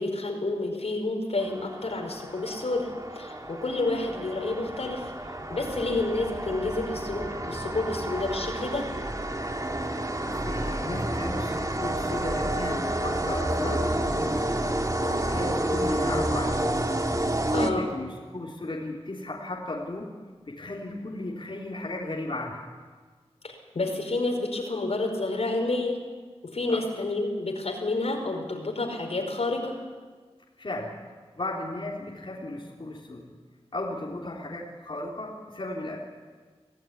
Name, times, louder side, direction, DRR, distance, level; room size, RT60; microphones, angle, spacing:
voice 1, 0.0-5.1 5.5-8.9 17.5-17.9 23.4-26.0 26.4-29.8, left 2 dB, 80° left, 2 dB, 4.9 m, -29 dB
sound 1, 1.4-18.2, right 1 dB, 35° right, 2.0 m, -30 dB
voice 2, 10.3-14.4 15.1-16.7 17.5-20.1 20.5-22.6 26.7-26.9 30.6-30.9 31.4-33.3 33.7-36.0, left 2 dB, 50° left, -3 dB, 3.7 m, -35 dB
25.0 x 17.0 x 9.7 m, 1.5 s
wide cardioid pair, 75°, 11 cm